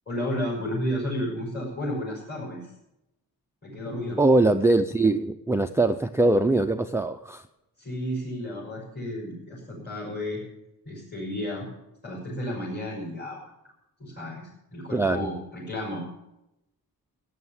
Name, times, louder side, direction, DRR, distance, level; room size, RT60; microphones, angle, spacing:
voice 1, 0.1-2.7 3.6-4.2 7.8-10.4 10.9-11.7 12.0-13.4 14.0-16.0, equal, 30° left, -5 dB, 5.3 m, -32 dB
voice 2, 4.2-7.5 14.9-15.3, right 2 dB, 5° right, 9 dB, 0.4 m, -22 dB
16.0 x 9.4 x 7.1 m, 0.89 s
wide cardioid pair, 170°, 37 cm